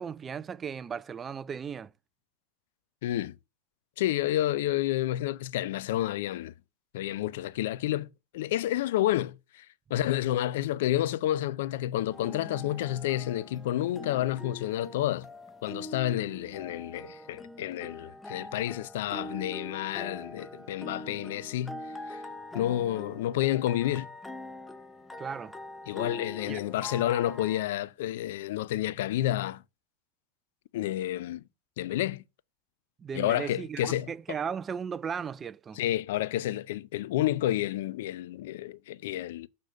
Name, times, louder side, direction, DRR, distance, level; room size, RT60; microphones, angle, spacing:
voice 1, 0.0-1.9 25.2-25.5 26.5-26.6 33.0-35.8, right 7 dB, 25° right, 0.3 m, -36 dB
voice 2, 3.0-3.4 4.0-6.5 6.9-8.1 8.3-9.7 9.9-15.3 15.6-21.8 22.1-22.2 22.5-24.1 25.9-29.6 30.7-31.4 31.8-32.2 33.1-34.1 35.8-39.5, left 13 dB, 70° left, 0.4 m, -30 dB
sound 1, 12.1-27.7, left 2 dB, 5° left, 0.7 m, -43 dB
6.6 x 3.9 x 6.3 m
hypercardioid pair, 110°, 0 cm